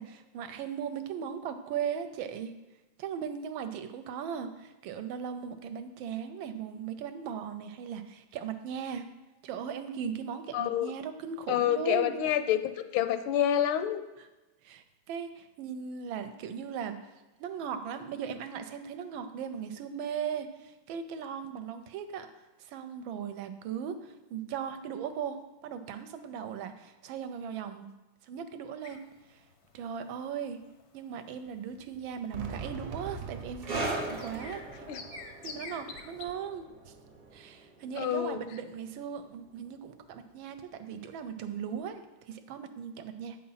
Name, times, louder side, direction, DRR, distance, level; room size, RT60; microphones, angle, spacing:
voice 1, 0.0-2.5 3.0-9.1 9.4-12.1 14.2-14.3 14.6-17.0 17.4-27.9 28.2-29.0 29.3-29.4 29.7-30.6 30.9-34.9 35.4-36.9 37.3-43.4, right 7 dB, 80° right, 9 dB, 1.3 m, -38 dB
voice 2, 10.5-10.9 11.5-14.0 34.9-35.0 38.0-38.4, left 10 dB, 80° left, 10 dB, 1.4 m, -28 dB
sound 1, 28.8-36.3, left 4 dB, 60° left, 0.7 m, -49 dB
Fireworks, 32.3-37.4, right 5 dB, 60° right, 1.2 m, -44 dB
sound 2, 33.6-40.6 40.9-41.1 41.8-41.9, right 2 dB, 35° right, 0.6 m, -41 dB
8.5 x 4.2 x 5.6 m, 1.1 s
omnidirectional pair, 2.2 m